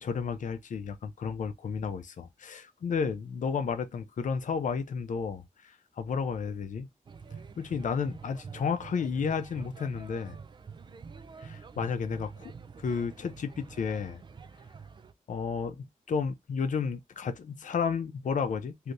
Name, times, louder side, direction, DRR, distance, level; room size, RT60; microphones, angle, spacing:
voice 1, 0.0-6.9 7.6-10.4 11.4-12.5 12.8-14.2 15.3-18.9, left 6 dB, 70° left, 0.6 m, -32 dB
sound 1, 7.1-15.1, right 5 dB, 35° right, 0.3 m, -47 dB
3.3 x 2.7 x 2.6 m
wide cardioid pair, 150°, 14 cm